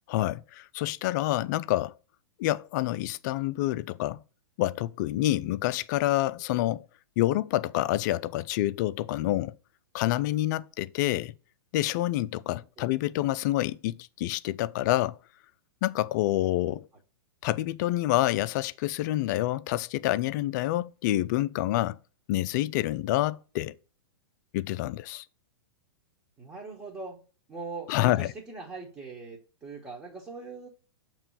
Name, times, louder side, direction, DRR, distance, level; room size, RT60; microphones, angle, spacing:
voice 1, 0.1-1.9 2.4-4.2 4.6-6.8 7.2-9.5 9.9-11.3 11.7-15.2 15.8-16.9 17.4-22.0 22.3-23.8 24.5-25.2 27.9-28.3, left 15 dB, 45° left, 0.4 m, -27 dB
voice 2, 26.4-27.2 27.5-30.7, right 3 dB, 15° right, 1.4 m, -41 dB
6.8 x 3.0 x 5.7 m
hypercardioid pair, 125°, 13 cm